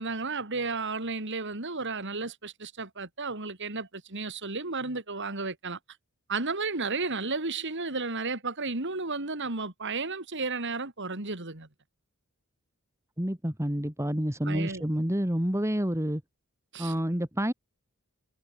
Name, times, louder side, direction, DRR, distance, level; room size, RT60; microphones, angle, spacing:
voice 1, 0.0-5.8 6.3-11.7 14.4-14.8 16.7-17.0, right 3 dB, 55° right, 3.2 m, -33 dB
voice 2, 13.2-16.2 16.8-17.5, equal, 15° right, 2.2 m, -28 dB
head